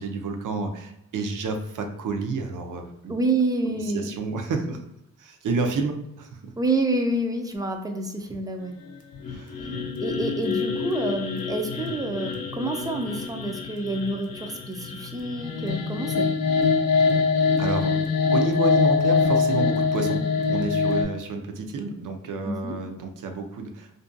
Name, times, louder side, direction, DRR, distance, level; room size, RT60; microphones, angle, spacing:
voice 1, 0.0-3.2 3.7-4.8 5.2-6.5 9.2-9.8 17.6-17.9 18.3-23.9, right 4 dB, 65° right, 5 dB, 0.5 m, -30 dB
voice 2, 3.1-4.1 6.6-8.7 10.0-16.3 22.4-22.8, right 2 dB, 10° right, 4 dB, 0.3 m, -28 dB
sound 1, 9.1-21.0, left 5 dB, 80° left, 0.6 m, -24 dB
2.5 x 2.2 x 2.5 m, 0.83 s
cardioid pair, 85°, 34 cm